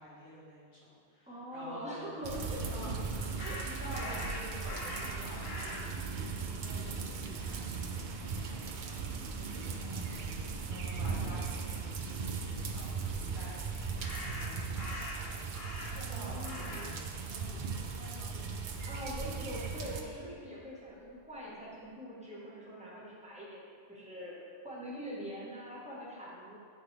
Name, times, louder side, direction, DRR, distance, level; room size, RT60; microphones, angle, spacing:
voice 1, 0.0-18.4, equal, 75° left, -9 dB, 1.9 m, -49 dB
voice 2, 1.3-2.6 3.4-3.6 16.1-16.9 18.9-26.6, equal, 5° right, -7 dB, 1.3 m, -44 dB
sound 1, 2.2-20.0, right 5 dB, 55° right, 0.6 m, -38 dB
sound 2, 3.4-5.9 6.8-6.9 7.2-8.1 14.0-16.1 16.4-16.9 17.2-18.8, left 2 dB, 50° left, 1.0 m, -43 dB
9.1 x 3.9 x 3.3 m, 2.2 s
omnidirectional pair, 1.1 m